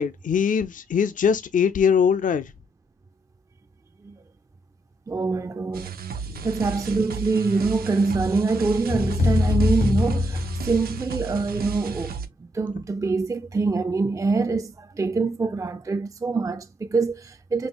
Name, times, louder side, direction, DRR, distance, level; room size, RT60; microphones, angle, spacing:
voice 1, 0.0-2.5 6.2-6.4, left 7 dB, 60° left, 0.5 m, -22 dB
voice 2, 5.1-5.9 6.4-12.1 12.5-17.7, right 4 dB, 20° right, 0.3 m, -25 dB
sound 1, 5.7-12.3, right 6 dB, 90° right, 0.7 m, -34 dB
sound 2, 8.9-11.2, left 3 dB, 85° left, 1.8 m, -23 dB
5.3 x 2.3 x 2.9 m
cardioid pair, 75°, 15 cm